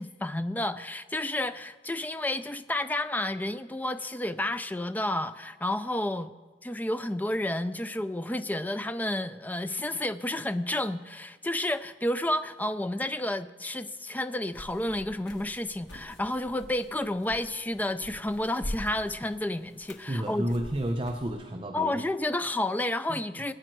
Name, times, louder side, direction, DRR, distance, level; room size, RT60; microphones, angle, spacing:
voice 1, 0.0-6.3 6.6-20.5 21.7-23.5, left 1 dB, 10° left, 0.4 m, -31 dB
sound 1, 14.5-21.3, equal, 90° left, 1.7 m, -44 dB
voice 2, 20.1-22.1 23.1-23.2, right 1 dB, 30° right, 0.6 m, -31 dB
21.5 x 9.0 x 4.5 m
head